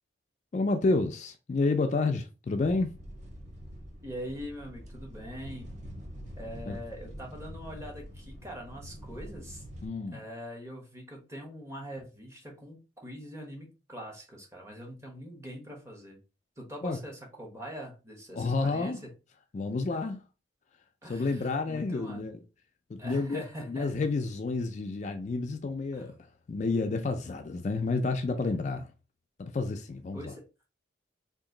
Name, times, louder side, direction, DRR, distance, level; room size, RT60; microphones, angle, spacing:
voice 1, 0.5-2.9 6.7-6.8 9.8-10.2 16.8-17.0 18.3-19.0 19.5-20.2 21.1-22.4 22.9-26.1 26.5-28.9 29.4-30.3, left 3 dB, 40° left, 0.3 m, -30 dB
sound 1, 2.6-9.9, equal, 40° right, 0.7 m, -45 dB
voice 2, 4.0-5.7 6.4-9.6 10.1-16.2 16.6-19.1 21.0-22.2 23.0-24.0 25.9-26.1 30.1-30.4, equal, 15° right, 1.0 m, -43 dB
2.9 x 2.5 x 3.7 m
head